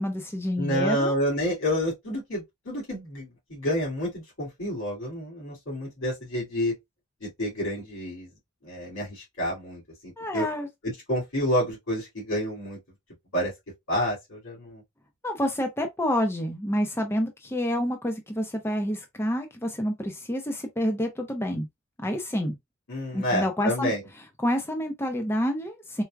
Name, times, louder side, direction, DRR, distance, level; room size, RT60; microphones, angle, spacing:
voice 1, 0.0-1.1 10.2-10.7 15.2-21.7 22.0-22.6 23.1-23.9 24.4-26.0, equal, 10° left, 0.6 m, -28 dB
voice 2, 0.6-6.7 7.2-8.3 8.6-10.5 10.8-12.8 13.3-13.5 13.9-14.8 22.9-24.0, equal, 75° left, 2.4 m, -29 dB
4.5 x 2.2 x 2.3 m
head